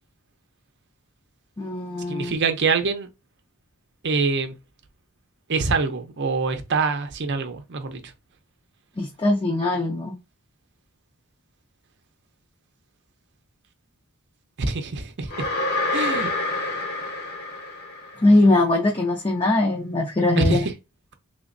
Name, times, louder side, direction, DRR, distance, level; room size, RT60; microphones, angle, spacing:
voice 1, 1.6-2.3 9.0-10.2 18.2-20.6, left 2 dB, 25° left, 0.6 m, -21 dB
voice 2, 2.1-3.1 4.0-4.5 5.5-8.1 14.6-15.5 15.9-16.3 16.6-16.7 20.4-20.7, right 4 dB, 50° right, 0.6 m, -25 dB
sound 1, 15.3-18.4, left 2 dB, 45° left, 0.9 m, -27 dB
3.4 x 3.0 x 2.6 m
head